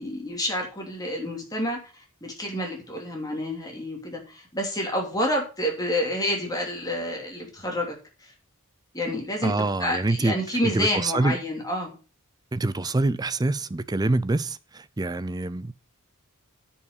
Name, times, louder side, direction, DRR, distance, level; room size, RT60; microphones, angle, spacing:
voice 1, 0.0-8.0 8.2-8.3 8.9-12.0, left 1 dB, 15° left, 3.0 m, -29 dB
voice 2, 9.4-10.3 10.6-11.4 12.5-15.7, right 2 dB, 20° right, 0.5 m, -25 dB
9.6 x 5.6 x 6.7 m
head